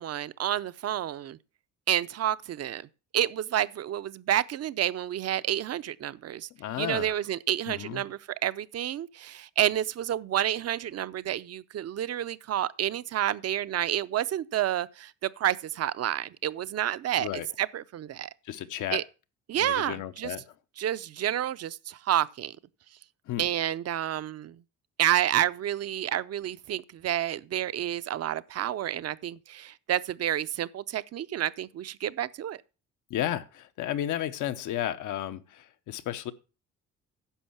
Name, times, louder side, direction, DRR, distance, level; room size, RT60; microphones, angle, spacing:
voice 1, 0.0-1.4 1.9-2.9 3.1-6.5 6.8-17.3 17.6-18.3 18.9-19.0 19.5-20.3 20.8-22.6 23.4-24.6 25.0-32.6, right 11 dB, 55° right, 0.6 m, -29 dB
voice 2, 6.6-7.2 7.7-8.0 17.2-17.5 18.4-19.0 19.6-20.4 23.3-23.5 33.1-36.3, left 12 dB, 80° left, 0.9 m, -33 dB
10.0 x 6.4 x 5.7 m
cardioid pair, 90°, 30 cm